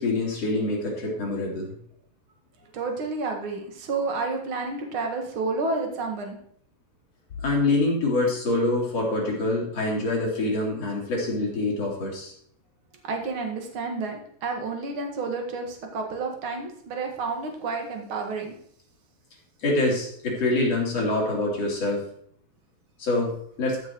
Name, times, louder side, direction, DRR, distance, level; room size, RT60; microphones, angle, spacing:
voice 1, 0.0-1.7 7.4-12.3 19.6-22.0 23.0-23.3 23.6-23.8, left 2 dB, 40° left, -3 dB, 3.6 m, -25 dB
voice 2, 2.7-6.3 13.0-18.5, right 3 dB, 45° right, 3 dB, 1.7 m, -30 dB
14.5 x 6.3 x 4.7 m, 0.64 s
omnidirectional pair, 4.8 m